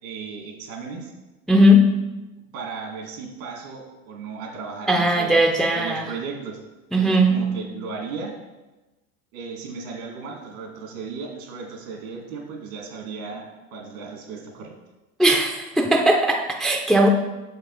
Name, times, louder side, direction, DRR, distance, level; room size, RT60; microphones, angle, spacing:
voice 1, 0.0-1.1 2.5-6.6 7.0-8.3 9.3-13.5 13.7-14.7, right 5 dB, 70° right, 1 dB, 2.1 m, -35 dB
voice 2, 1.5-2.0 4.9-6.1 6.9-7.5 15.2-17.1, equal, ahead, 2 dB, 0.5 m, -18 dB
6.8 x 5.4 x 3.9 m, 1.1 s
hypercardioid pair, 95°, 43 cm